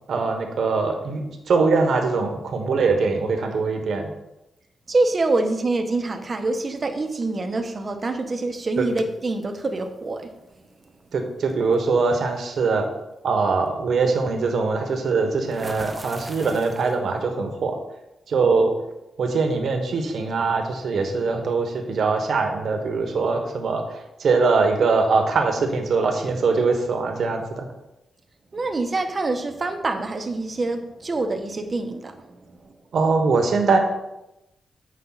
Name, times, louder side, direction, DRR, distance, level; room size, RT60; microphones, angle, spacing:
voice 1, 0.1-4.1 8.8-8.9 11.1-12.9 13.2-17.8 18.3-18.7 19.2-27.7 32.9-33.8, right 4 dB, 70° right, 4 dB, 1.3 m, -22 dB
voice 2, 4.9-10.3 28.5-32.6, right 2 dB, 35° right, 6 dB, 1.0 m, -25 dB
sound 1, 8.9-9.5 10.8-11.0 11.5-11.7 15.5-17.2, right 1 dB, 10° right, 0.7 m, -39 dB
8.7 x 5.2 x 4.0 m, 0.92 s
cardioid pair, 100°, 0 cm